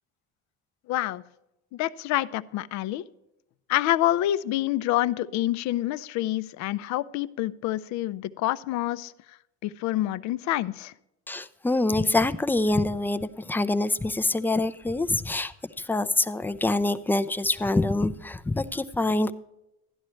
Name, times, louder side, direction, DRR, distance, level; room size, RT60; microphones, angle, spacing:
voice 1, 0.9-1.2 1.7-3.0 3.7-9.1 9.6-10.9, left 14 dB, 60° left, 0.5 m, -27 dB
voice 2, 11.3-19.3, left 2 dB, 5° left, 0.4 m, -25 dB
12.5 x 10.5 x 3.1 m
cardioid pair, 110°, 31 cm